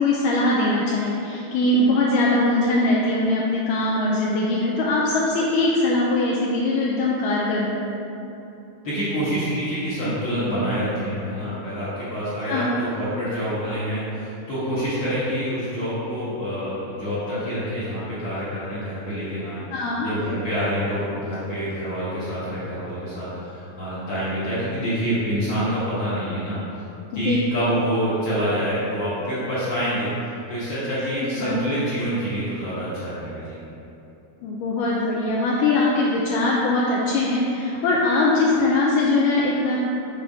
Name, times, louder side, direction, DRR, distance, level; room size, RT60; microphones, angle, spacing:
voice 1, 0.0-7.8 12.4-12.7 19.7-20.1 27.1-27.4 31.2-31.6 34.4-39.8, left 2 dB, 85° left, -4 dB, 1.9 m, -21 dB
voice 2, 8.8-19.6 20.0-26.6 27.1-30.1 30.5-33.6, equal, 55° left, -12 dB, 1.5 m, -26 dB
7.7 x 3.4 x 5.2 m, 2.9 s
omnidirectional pair, 4.3 m